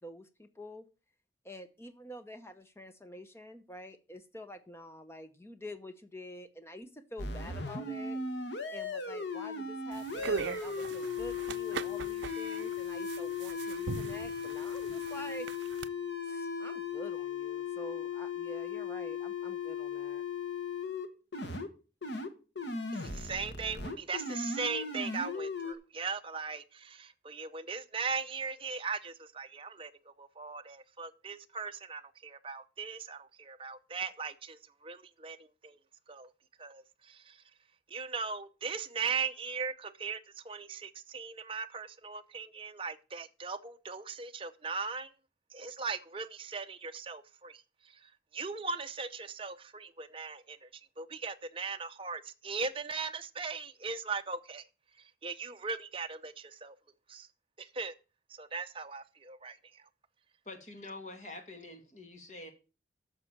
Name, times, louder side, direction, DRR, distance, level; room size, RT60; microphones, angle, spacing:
voice 1, 0.0-0.9 1.4-8.2 8.7-15.5 16.2-20.2, left 1 dB, 15° left, 0.9 m, -47 dB
sound 1, 7.2-21.1 21.3-21.7 22.0-22.3 22.6-25.7, left 5 dB, 75° left, 1.6 m, -37 dB
sound 2, 9.9-15.9, right 5 dB, 80° right, 0.5 m, -40 dB
voice 2, 23.0-35.8 36.1-36.3 36.6-37.4 37.9-45.1 45.5-50.7 51.0-54.6 55.0-56.7 57.1-57.3 57.6-58.0 58.3-59.8, right 5 dB, 30° right, 0.7 m, -39 dB
voice 3, 60.5-62.5, left 2 dB, 40° left, 2.2 m, -46 dB
9.8 x 6.7 x 7.3 m
head